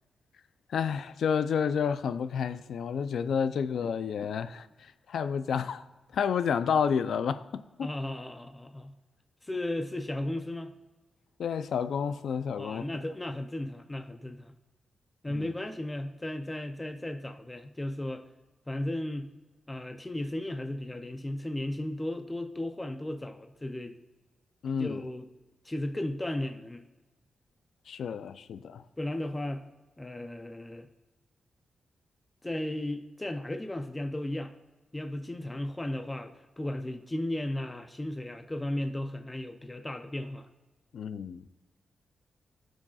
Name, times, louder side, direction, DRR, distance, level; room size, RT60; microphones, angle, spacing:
voice 1, 0.7-5.8 6.1-7.9 11.4-12.9 15.3-15.5 24.6-25.0 27.9-28.8 40.9-41.5, left 7 dB, 80° left, 0.5 m, -30 dB
voice 2, 7.8-8.9 9.4-10.7 12.6-14.5 15.2-18.2 18.7-19.3 19.7-23.9 24.8-25.3 25.6-26.8 29.0-29.6 30.0-30.9 32.4-34.5 34.9-40.5, left 1 dB, 15° left, 0.5 m, -35 dB
18.5 x 6.3 x 2.4 m
wide cardioid pair, 145°, 0 cm